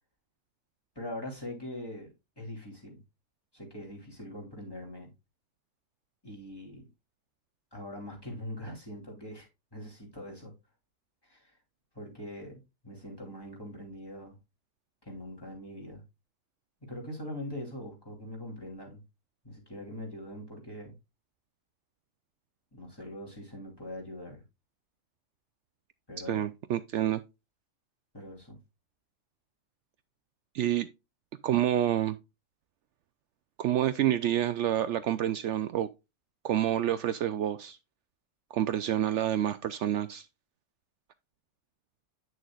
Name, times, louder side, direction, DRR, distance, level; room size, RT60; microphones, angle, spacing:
voice 1, 0.9-3.0 3.5-5.1 6.2-6.9 7.7-10.5 11.2-11.5 11.9-14.4 15.0-16.0 16.8-19.0 19.4-21.0 22.7-24.4 26.1-26.4 28.1-28.6, left 1 dB, 20° left, 3.0 m, -42 dB
voice 2, 26.3-27.2 30.5-30.9 31.4-32.2 33.6-35.9 36.4-37.8 38.5-40.3, right 11 dB, 70° right, 0.8 m, -28 dB
9.1 x 6.4 x 2.3 m
omnidirectional pair, 1.3 m